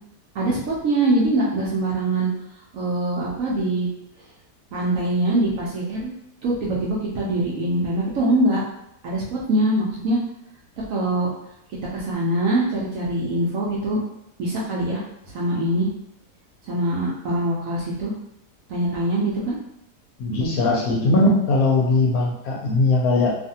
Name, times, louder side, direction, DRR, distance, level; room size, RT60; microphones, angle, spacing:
voice 1, 0.3-2.3 2.7-3.9 4.7-6.1 6.4-8.6 9.0-10.2 10.8-11.3 11.9-14.0 14.4-15.0 15.3-15.9 16.7-18.1 18.7-19.6, right 1 dB, 65° right, -5 dB, 0.8 m, -23 dB
voice 2, 20.2-23.3, left 2 dB, 70° left, -1 dB, 0.9 m, -19 dB
2.6 x 2.4 x 2.7 m, 0.80 s
omnidirectional pair, 1.8 m